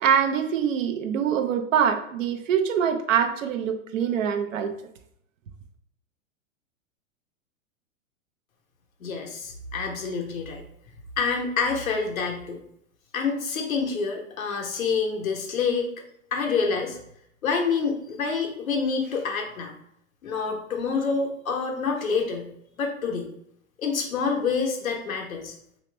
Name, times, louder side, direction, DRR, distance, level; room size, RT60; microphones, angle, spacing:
voice 1, 0.0-4.7, right 8 dB, 70° right, 7 dB, 0.7 m, -24 dB
voice 2, 9.0-10.6 11.2-12.6 13.1-15.9 16.3-17.0 17.4-19.7 20.2-22.5 22.8-23.3 23.8-25.6, left 5 dB, 80° left, 2 dB, 0.9 m, -27 dB
3.1 x 2.9 x 3.2 m, 0.72 s
hypercardioid pair, 105°, 41 cm